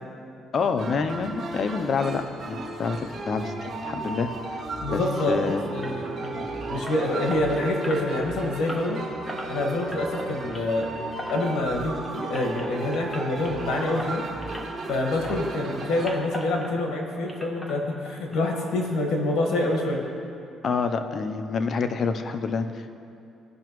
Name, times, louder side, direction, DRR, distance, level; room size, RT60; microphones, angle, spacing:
voice 1, 0.5-4.6 4.9-5.0 5.3-5.6 20.6-22.9, left 5 dB, 45° left, 8 dB, 0.6 m, -27 dB
sound 1, 0.8-16.1, right 2 dB, 45° right, 1.7 m, -35 dB
voice 2, 4.8-9.0 9.5-10.9 11.3-14.2 14.9-20.0, left 2 dB, 70° left, 1 dB, 1.7 m, -26 dB
sound 2, 5.8-15.0 15.2-17.0 17.3-18.4 18.6-18.8 19.2-19.3 19.6-19.7, equal, 10° left, 1.1 m, -40 dB
16.0 x 5.7 x 3.1 m, 2.6 s
cardioid pair, 95°, 0 cm